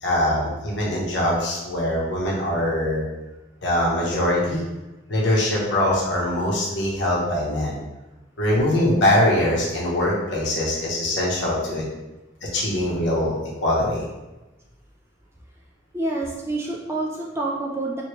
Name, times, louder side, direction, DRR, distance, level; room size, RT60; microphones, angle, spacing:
voice 1, 0.0-3.0 3.6-4.6 5.1-7.8 8.4-11.8 12.4-14.0, left 1 dB, 65° left, -4 dB, 0.9 m, -22 dB
voice 2, 15.9-18.0, right 2 dB, 15° right, -2 dB, 0.3 m, -27 dB
3.1 x 2.7 x 3.0 m, 1.1 s
head